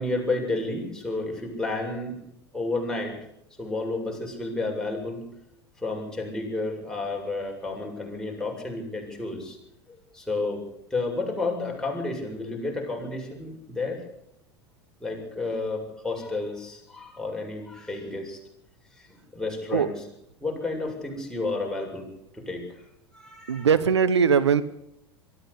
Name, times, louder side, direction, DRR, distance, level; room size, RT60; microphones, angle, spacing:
voice 1, 0.0-2.2 2.5-3.2 3.6-5.2 5.8-9.6 9.9-10.6 10.9-14.0 15.0-18.4 19.0-20.0 20.4-22.7 23.1-23.7, left 2 dB, 5° left, -1 dB, 7.5 m, -31 dB
voice 2, 23.5-24.6, right 6 dB, 85° right, 14 dB, 1.0 m, -20 dB
23.0 x 14.0 x 8.4 m, 0.78 s
hypercardioid pair, 80°, 14 cm